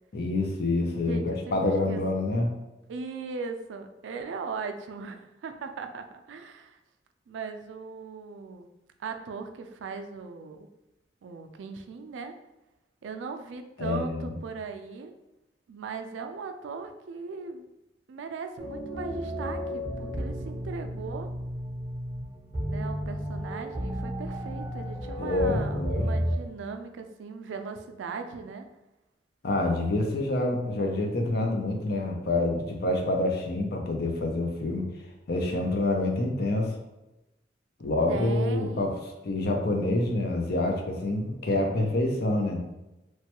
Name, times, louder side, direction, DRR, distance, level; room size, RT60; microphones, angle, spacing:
voice 1, 0.1-2.5 13.8-14.3 25.2-26.1 29.4-34.9 35.3-36.7 37.8-38.9 39.2-42.6, left 2 dB, 60° left, 2 dB, 0.5 m, -27 dB
voice 2, 1.0-2.0 2.9-6.8 7.3-8.7 9.0-10.7 11.2-12.3 13.0-15.1 15.7-17.7 18.1-21.3 22.7-28.7 38.1-38.9, right 4 dB, 85° right, 6 dB, 0.3 m, -38 dB
sound 1, 18.6-26.3, equal, 15° left, 1.1 m, -33 dB
3.1 x 2.2 x 2.9 m, 0.95 s
head